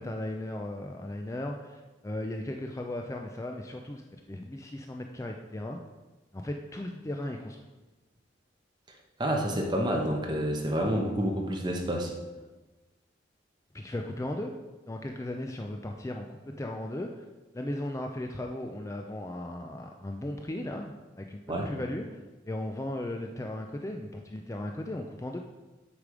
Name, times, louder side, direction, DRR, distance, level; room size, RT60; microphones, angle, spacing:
voice 1, 0.0-5.8 6.3-7.6 13.7-14.5 14.9-17.1 17.5-22.2 22.5-25.4, left 1 dB, 15° left, 3 dB, 0.4 m, -36 dB
voice 2, 9.2-12.1 21.5-21.7, equal, 25° right, 0 dB, 1.1 m, -28 dB
8.3 x 5.0 x 5.0 m, 1.2 s
head